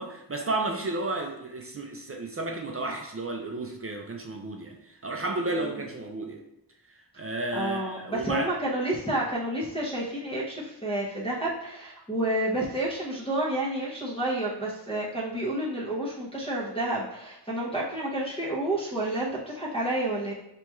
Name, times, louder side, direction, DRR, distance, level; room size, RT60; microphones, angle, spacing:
voice 1, 0.0-6.4 7.2-8.5, right 2 dB, 35° right, 2 dB, 0.4 m, -32 dB
voice 2, 7.5-20.3, right 1 dB, 15° left, -8 dB, 0.7 m, -30 dB
5.6 x 3.0 x 2.3 m, 0.84 s
wide cardioid pair, 130°, 41 cm